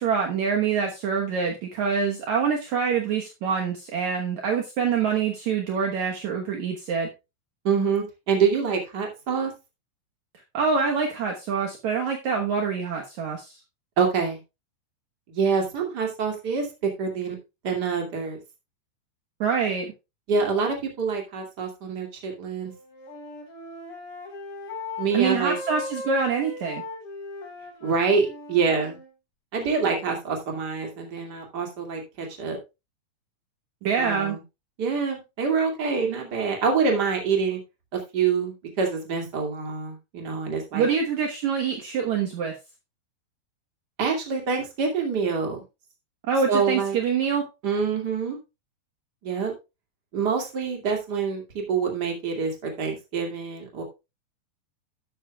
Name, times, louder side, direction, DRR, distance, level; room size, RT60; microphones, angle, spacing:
voice 1, 0.0-7.1 10.5-13.6 19.4-19.9 25.1-26.8 33.8-34.4 40.7-42.5 46.3-47.4, right 6 dB, 75° right, 1 dB, 1.7 m, -25 dB
voice 2, 7.6-9.5 14.0-14.4 15.3-17.4 17.6-18.4 20.3-22.7 25.0-25.6 27.8-29.0 29.5-32.6 34.0-34.4 34.8-37.6 37.9-40.9 44.0-45.6 46.5-47.0 47.6-48.4 49.2-49.5 50.1-53.8, right 5 dB, 30° right, 2 dB, 2.0 m, -26 dB
Wind instrument woodwind instrument, 22.7-29.1, left 3 dB, 45° left, 4.8 m, -38 dB
12.0 x 9.8 x 2.3 m, 0.25 s
omnidirectional pair, 5.2 m